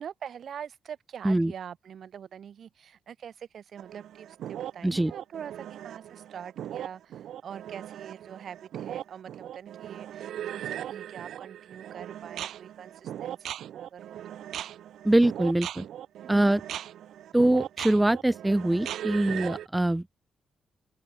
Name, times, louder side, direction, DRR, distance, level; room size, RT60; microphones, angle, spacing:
voice 1, 0.0-14.4 16.2-16.6, right 8 dB, 55° right, 8.0 m, -44 dB
sound 1, 3.8-19.7, right 11 dB, 75° right, 6.9 m, -39 dB
voice 2, 15.0-15.8 16.3-16.6 17.3-20.0, right 1 dB, 10° right, 2.8 m, -23 dB
open air
cardioid pair, 130°, 0 cm